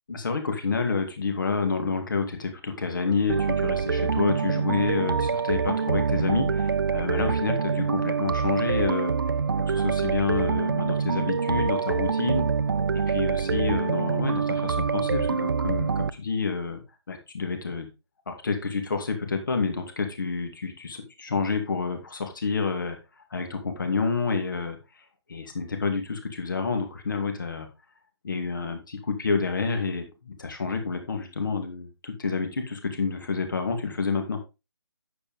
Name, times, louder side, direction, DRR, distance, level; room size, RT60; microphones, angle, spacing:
voice 1, 0.1-9.1 9.7-12.5 13.1-16.8 17.1-17.9 18.3-23.0 23.3-24.8 25.3-27.7 28.2-34.4, left 4 dB, 45° left, 6 dB, 2.4 m, -29 dB
sound 1, 3.3-16.1, right 5 dB, 50° right, 0.5 m, -25 dB
9.5 x 7.6 x 3.6 m, 0.27 s
figure-of-eight pair, 155°, 14 cm